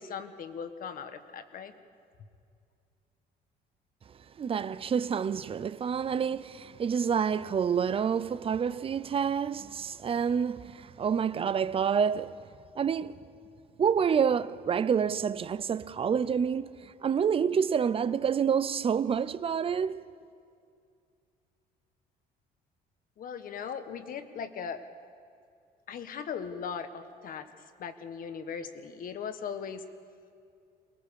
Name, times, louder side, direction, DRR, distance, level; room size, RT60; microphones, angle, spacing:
voice 1, 0.0-1.7 23.2-24.8 25.9-27.5 27.8-29.8, left 6 dB, 55° left, 1.5 m, -38 dB
voice 2, 4.4-12.4 12.7-13.2 13.8-20.1, right 7 dB, 35° right, 0.6 m, -28 dB
23.5 x 20.0 x 7.0 m
cardioid pair, 110°, 17 cm